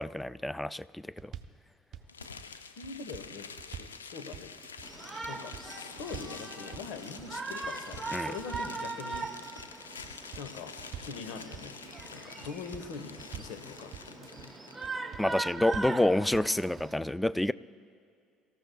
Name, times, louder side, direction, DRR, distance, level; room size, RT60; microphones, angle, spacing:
voice 1, 0.0-1.3 8.1-8.3 15.2-17.5, left 1 dB, 5° left, 18 dB, 0.4 m, -28 dB
sound 1, 1.2-1.6 1.9-2.5 2.8-4.0 4.3-4.9 5.2-5.7 6.0-6.4 6.7-7.3 7.6-8.8 9.1-9.7 10.0-11.2 11.5-12.1 12.4-13.6 13.9-14.5 14.8-15.3 15.6-16.0 16.3-16.9, right 9 dB, 50° right, 0.8 m, -46 dB
sound 2, 2.1-14.9, left 5 dB, 90° left, 0.5 m, -47 dB
voice 2, 2.8-3.5 3.8-4.5 5.3-9.3 10.4-10.7 11.0-11.8 12.1-14.5, left 5 dB, 65° left, 9 dB, 1.2 m, -43 dB
Shout, 4.8-17.0, right 3 dB, 15° right, 1.0 m, -41 dB
24.5 x 14.0 x 2.3 m, 2.3 s
hypercardioid pair, 65°, 0 cm